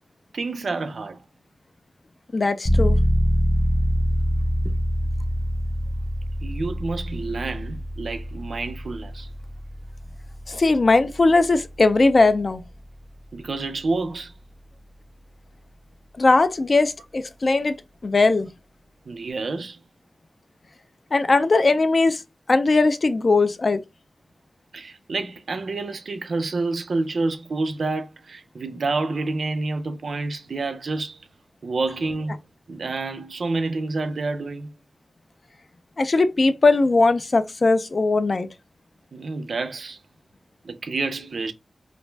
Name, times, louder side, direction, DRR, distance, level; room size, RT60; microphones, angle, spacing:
voice 1, 0.3-1.2 4.6-4.8 6.4-9.3 13.3-14.3 19.1-19.8 24.7-31.2 31.6-32.4 32.7-34.7 39.1-40.0 40.6-41.5, right 3 dB, 75° right, 0.4 m, -28 dB
voice 2, 2.3-3.0 10.5-12.6 16.2-17.8 18.0-18.5 21.1-22.2 22.5-23.8 36.0-38.5, left 3 dB, 50° left, 0.3 m, -19 dB
sound 1, 2.7-13.2, equal, 5° left, 0.7 m, -25 dB
2.5 x 2.1 x 3.1 m
wide cardioid pair, 100°, 0 cm